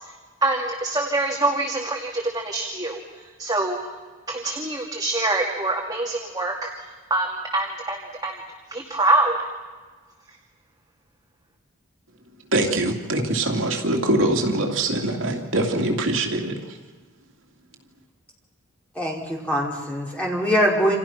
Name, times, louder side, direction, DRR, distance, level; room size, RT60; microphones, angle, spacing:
voice 1, 0.4-3.9 4.3-8.3 8.7-9.4, right 2 dB, 20° right, 0 dB, 2.3 m, -25 dB
voice 2, 12.5-16.6, right 2 dB, 70° right, 2 dB, 2.7 m, -23 dB
voice 3, 19.0-21.0, equal, 5° left, -3 dB, 5.4 m, -23 dB
29.0 x 27.5 x 5.9 m, 1.4 s
head